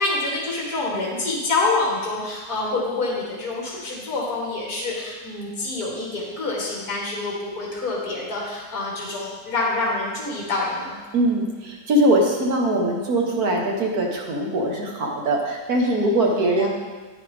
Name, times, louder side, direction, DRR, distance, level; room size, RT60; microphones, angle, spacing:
voice 1, 0.0-11.0 15.8-16.7, left 3 dB, 65° left, -4 dB, 2.2 m, -27 dB
voice 2, 11.1-16.7, right 1 dB, 65° right, 0 dB, 1.9 m, -21 dB
9.9 x 9.8 x 3.6 m, 1.3 s
omnidirectional pair, 1.7 m